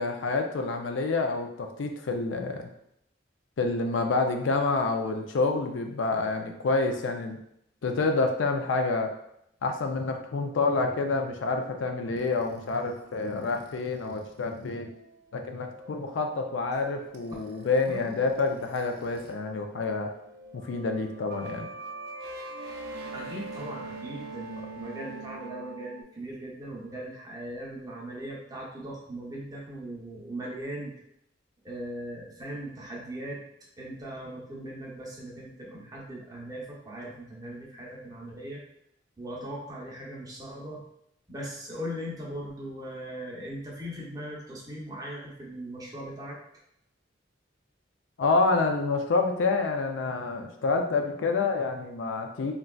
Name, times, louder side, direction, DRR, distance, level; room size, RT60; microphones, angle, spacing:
voice 1, 0.0-2.7 3.6-7.4 7.8-9.1 9.6-14.9 15.3-20.1 20.5-21.7 48.2-52.5, left 3 dB, 85° left, 5 dB, 0.4 m, -28 dB
sound 1, 12.1-19.3 19.6-26.0, right 2 dB, 55° right, 0.4 m, -44 dB
voice 2, 17.9-18.2 23.1-30.9 31.6-33.4 33.8-38.6 39.2-40.8 41.3-46.4, right 1 dB, 20° right, -3 dB, 0.7 m, -39 dB
3.7 x 2.2 x 2.3 m, 0.76 s
head